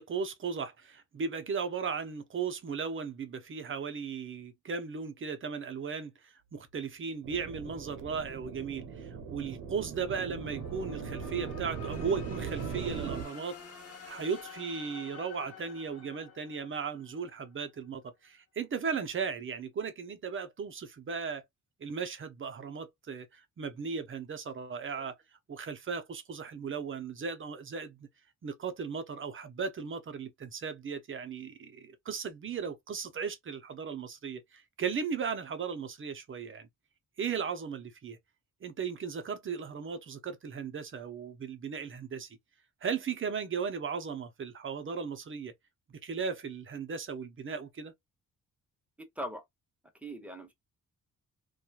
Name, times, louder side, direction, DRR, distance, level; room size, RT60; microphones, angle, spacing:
voice 1, 0.0-13.6 14.1-21.4 21.8-25.1 25.5-28.0 28.4-36.7 37.2-38.2 38.6-42.3 42.8-45.5 46.0-47.9, right 6 dB, 40° right, 0.6 m, -36 dB
sound 1, 6.5-17.5, left 6 dB, 45° left, 1.2 m, -50 dB
sound 2, 7.2-13.2, right 6 dB, 90° right, 0.8 m, -39 dB
voice 2, 49.0-49.4 50.0-50.5, equal, 5° right, 0.8 m, -41 dB
2.9 x 2.3 x 2.3 m
cardioid pair, 120°, 33 cm